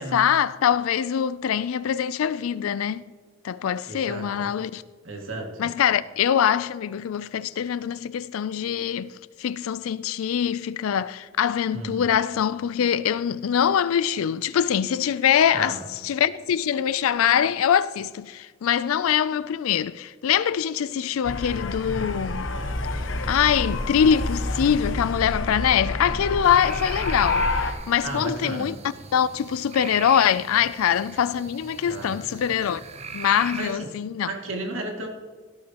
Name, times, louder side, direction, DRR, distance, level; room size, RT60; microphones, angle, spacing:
voice 1, 0.0-3.0 3.4-4.8 5.6-9.1 9.4-22.5 22.9-28.7 29.1-32.8 33.1-34.3, left 8 dB, 85° left, 0.4 m, -23 dB
voice 2, 3.9-4.5 5.0-5.7 11.7-12.0 15.5-15.8 28.0-28.8 31.8-32.2 33.5-33.9 34.3-35.1, right 2 dB, 70° right, 2.2 m, -33 dB
sound 1, 21.2-27.7, left 2 dB, 65° left, 1.1 m, -28 dB
sound 2, 26.4-33.7, right 5 dB, 30° right, 0.6 m, -40 dB
17.5 x 11.5 x 2.9 m
head